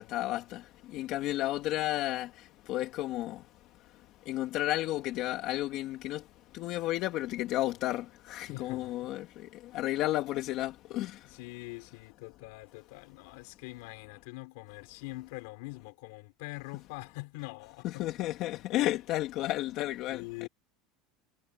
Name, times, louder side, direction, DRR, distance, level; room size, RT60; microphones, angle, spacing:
voice 1, 0.0-3.5 3.8-11.4 17.8-20.5, left 15 dB, 50° left, 2.1 m, -33 dB
voice 2, 8.5-9.1 11.2-18.1 18.8-18.9 20.1-20.5, left 24 dB, 70° left, 4.6 m, -44 dB
supercardioid pair, 155°, 0 cm